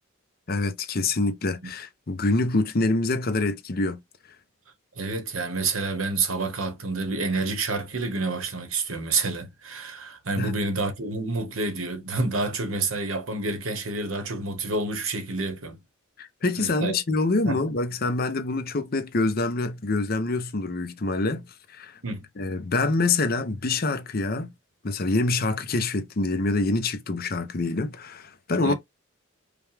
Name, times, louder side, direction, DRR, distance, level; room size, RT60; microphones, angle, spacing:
voice 1, 0.5-4.0 10.4-10.5 16.2-21.5 21.8-22.0 22.4-24.5 24.8-28.7, left 3 dB, 45° left, 0.7 m, -26 dB
voice 2, 4.9-15.8 16.6-17.0 17.4-17.6 22.0-22.3 28.6-28.7, right 3 dB, 80° right, 1.2 m, -28 dB
5.1 x 2.3 x 3.3 m
head